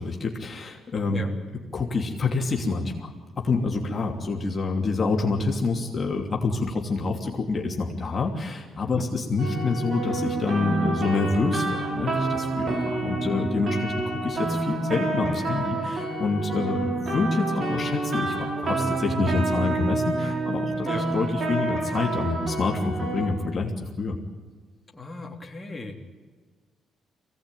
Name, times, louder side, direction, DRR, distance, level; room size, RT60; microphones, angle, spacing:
voice 1, 0.0-1.2 1.7-24.2, left 3 dB, 40° left, 0 dB, 2.9 m, -27 dB
sound 1, 9.4-23.2, right 2 dB, 55° right, 6.2 m, -28 dB
voice 2, 24.9-26.0, left 2 dB, 15° left, 0 dB, 3.3 m, -36 dB
22.5 x 17.5 x 9.2 m, 1.5 s
cardioid pair, 90°, 0 cm